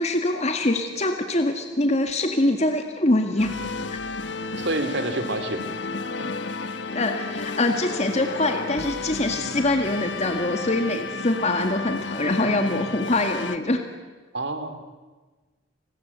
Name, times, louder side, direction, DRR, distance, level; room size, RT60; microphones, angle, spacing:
voice 1, 0.0-3.6 6.9-13.8, left 2 dB, 35° left, 5 dB, 2.0 m, -24 dB
sound 1, 3.4-13.6, left 3 dB, 75° left, 1.2 m, -32 dB
voice 2, 4.5-5.7 6.2-6.3 14.3-14.8, right 2 dB, 65° right, 9 dB, 2.9 m, -28 dB
29.5 x 20.5 x 8.3 m, 1.3 s
head